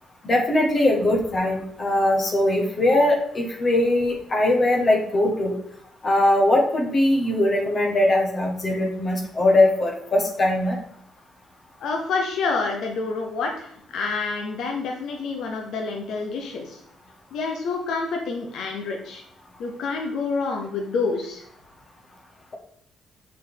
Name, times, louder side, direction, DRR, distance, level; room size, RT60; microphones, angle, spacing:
voice 1, 0.2-5.5 6.0-10.8, left 1 dB, 40° left, 0 dB, 1.1 m, -21 dB
voice 2, 11.8-16.8 17.3-19.2 19.6-21.4, left 4 dB, 75° left, 1 dB, 0.8 m, -28 dB
6.5 x 4.4 x 3.4 m, 0.66 s
cardioid pair, 90°, 0 cm